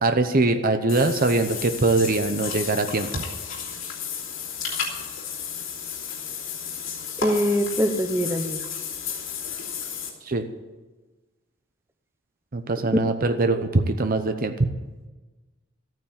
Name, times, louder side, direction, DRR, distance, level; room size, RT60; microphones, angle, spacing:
voice 1, 0.0-3.2 10.2-10.4 12.5-14.7, right 2 dB, 45° right, 7 dB, 0.8 m, -22 dB
Water / Bathtub (filling or washing), 0.9-10.1, left 7 dB, 75° left, 3.0 m, -33 dB
voice 2, 7.2-8.6, equal, 15° right, 8 dB, 1.0 m, -23 dB
14.0 x 9.2 x 8.7 m, 1.2 s
head